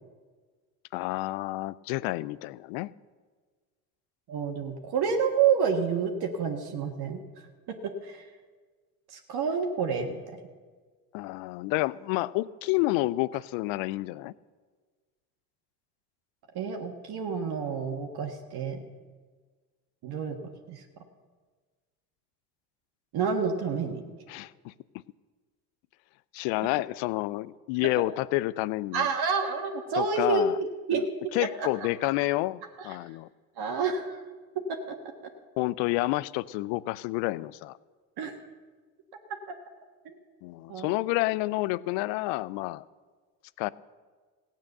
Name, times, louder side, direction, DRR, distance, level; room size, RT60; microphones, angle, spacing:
voice 1, 0.9-2.9 11.1-14.3 24.3-24.7 26.3-29.1 30.0-30.6 30.9-31.0 31.3-33.3 35.6-37.8 40.4-42.8 43.6-43.7, left 19 dB, 70° left, 20 dB, 0.6 m, -29 dB
voice 2, 4.3-7.2 7.7-8.3 9.1-10.4 16.5-18.8 20.0-20.4 20.7-20.8 23.1-24.1 28.9-31.0 31.6-31.7 32.8-33.0 33.6-34.2 34.7-34.8 38.2-38.3 39.3-39.5 40.0-40.1 40.7-40.9, right 5 dB, 55° right, 3 dB, 1.6 m, -29 dB
16.0 x 9.1 x 6.7 m, 1.5 s
hypercardioid pair, 65°, 46 cm